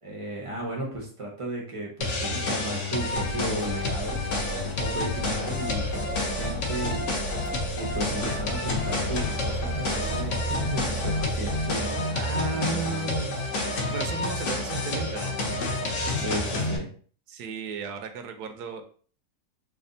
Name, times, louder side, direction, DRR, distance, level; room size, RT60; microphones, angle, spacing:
voice 1, 0.0-4.2 4.6-7.1 7.8-12.8 16.1-16.9, right 1 dB, 45° right, -2 dB, 0.4 m, -35 dB
sound 1, 2.0-16.8, left 2 dB, 60° left, 0.8 m, -29 dB
sound 2, 3.1-11.9, left 2 dB, 40° left, 1.2 m, -36 dB
voice 2, 12.1-13.4 13.9-15.4 17.3-18.8, right 3 dB, 70° right, 6 dB, 1.1 m, -33 dB
3.3 x 2.3 x 3.8 m, 0.44 s
omnidirectional pair, 1.9 m